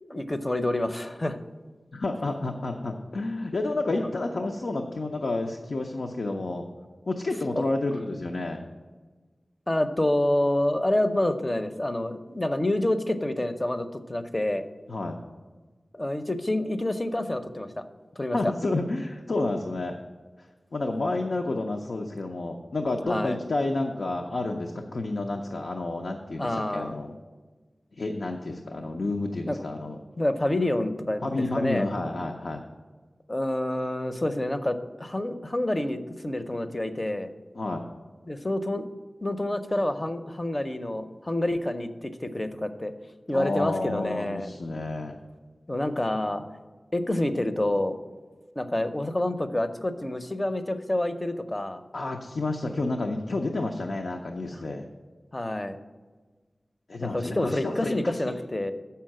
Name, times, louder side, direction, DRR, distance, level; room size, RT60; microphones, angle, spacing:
voice 1, 0.0-1.4 3.9-4.1 7.6-7.7 9.7-14.6 15.9-17.8 18.2-18.4 23.1-23.4 26.4-27.0 29.5-29.6 30.2-31.9 33.3-37.3 38.3-38.9 39.2-42.9 43.3-44.5 45.7-46.4 46.9-48.0 48.6-51.8 55.3-55.8 57.0-58.7, left 1 dB, 30° left, 9 dB, 0.6 m, -28 dB
voice 2, 1.9-6.6 7.1-8.6 14.9-15.2 18.3-20.0 20.4-27.1 28.0-30.0 31.2-32.6 37.5-37.8 43.3-45.2 51.9-54.9 56.9-58.3, left 2 dB, 75° left, 2 dB, 0.6 m, -30 dB
7.1 x 5.7 x 7.5 m, 1.4 s
wide cardioid pair, 65°, 0 cm